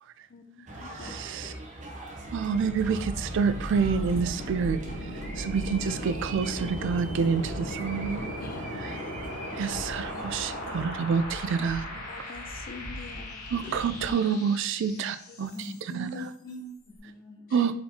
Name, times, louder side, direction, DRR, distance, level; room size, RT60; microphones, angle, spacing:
voice 1, 0.3-1.6 4.8-4.9 8.4-8.6 9.3-9.4 10.1-10.8 11.4-11.6 12.1-13.6 15.3-15.5 17.5-17.7, left 4 dB, 45° left, 8 dB, 0.5 m, -47 dB
sound 1, 0.7-10.8, right 2 dB, 35° right, 0.7 m, -42 dB
voice 2, 1.0-1.5 2.3-5.1 5.4-8.3 9.6-11.9 13.5-15.7 15.9-16.2 17.5-17.7, right 6 dB, 60° right, 12 dB, 0.3 m, -28 dB
sound 2, 2.2-16.0, left 1 dB, 90° left, 1.1 m, -38 dB
sound 3, 2.6-14.1, equal, 80° right, 1.2 m, -44 dB
voice 3, 15.5-17.8, equal, 20° left, -8 dB, 1.4 m, -41 dB
4.2 x 4.0 x 2.8 m, 0.65 s
head